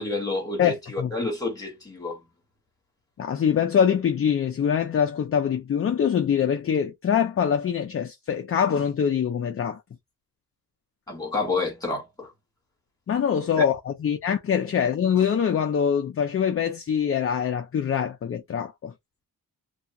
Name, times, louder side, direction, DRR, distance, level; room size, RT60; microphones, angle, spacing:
voice 1, 0.0-2.2 11.1-12.3 13.6-13.7, left 3 dB, 10° left, 1.4 m, -29 dB
voice 2, 0.6-1.1 3.2-9.8 13.1-18.9, left 8 dB, 40° left, 0.4 m, -24 dB
2.7 x 2.3 x 2.7 m
wide cardioid pair, 150°, 37 cm